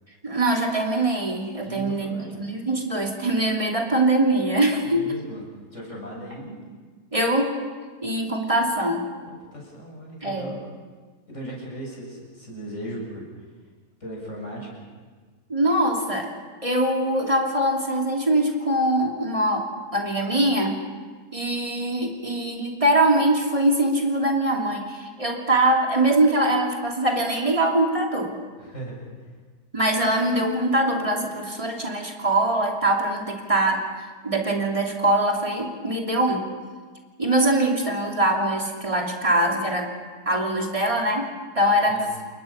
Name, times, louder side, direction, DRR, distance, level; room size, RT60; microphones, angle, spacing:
voice 1, 0.2-5.1 7.1-7.5 8.0-9.1 10.2-10.5 15.5-16.3 16.6-20.8 21.3-28.3 29.7-33.9 34.2-36.5 37.2-39.9 40.2-41.3 41.5-42.0, right 1 dB, 20° right, 1 dB, 2.9 m, -23 dB
voice 2, 1.6-2.4 4.8-5.4 5.7-6.6 9.3-10.6 11.3-13.3 14.0-14.8 28.6-29.1 41.9-42.1, right 1 dB, 50° left, -2 dB, 7.7 m, -37 dB
29.0 x 22.0 x 5.7 m, 1.5 s
omnidirectional pair, 1.6 m